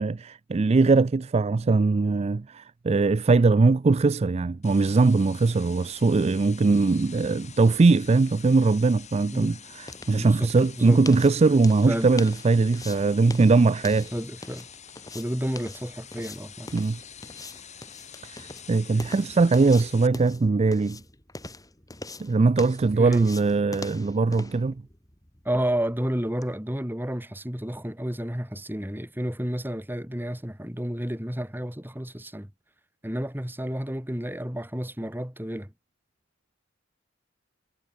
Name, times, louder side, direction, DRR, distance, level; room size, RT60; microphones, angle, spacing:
voice 1, 0.0-14.1 16.7-17.0 18.2-21.0 22.2-24.8, right 3 dB, 30° right, 0.4 m, -21 dB
sound 1, 4.6-20.1, left 8 dB, 35° left, 3.7 m, -47 dB
sound 2, 8.7-26.5, left 2 dB, 20° left, 5.6 m, -44 dB
voice 2, 10.2-10.5 10.8-11.0 11.9-12.1 14.1-14.7 15.1-16.7 19.0-19.1 22.9-23.3 25.4-32.5 33.0-35.7, equal, 10° right, 3.2 m, -31 dB
head